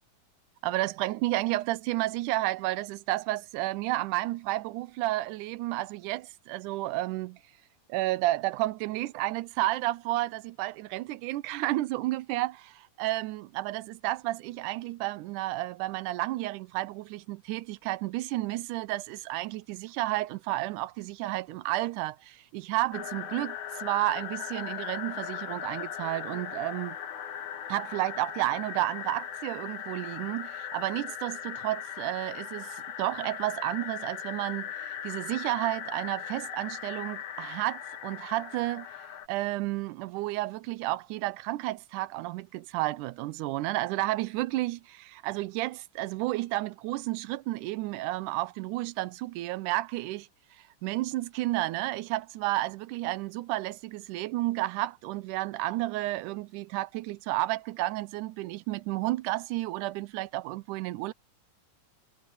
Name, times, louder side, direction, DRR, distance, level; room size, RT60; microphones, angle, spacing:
voice 1, 0.6-7.4 7.9-27.0 27.7-38.9 39.3-50.3 50.8-61.1, right 17 dB, 85° right, 2.2 m, -31 dB
sound 1, 22.9-39.3, left 9 dB, 70° left, 2.9 m, -39 dB
omnidirectional pair, 3.6 m